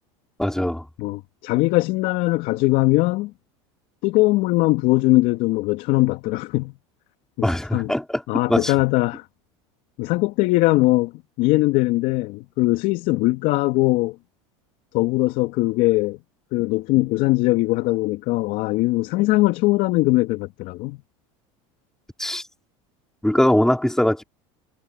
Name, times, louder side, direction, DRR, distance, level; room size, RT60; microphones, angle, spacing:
voice 1, 0.4-0.8 7.4-8.2 8.5-8.7 22.2-22.4 23.2-24.2, left 1 dB, 5° left, 3.7 m, -21 dB
voice 2, 1.0-3.3 4.0-6.7 7.4-7.9 8.3-9.3 10.0-11.1 11.4-14.2 14.9-16.2 16.5-21.0, left 20 dB, 60° left, 2.6 m, -20 dB
supercardioid pair, 100°, 16 cm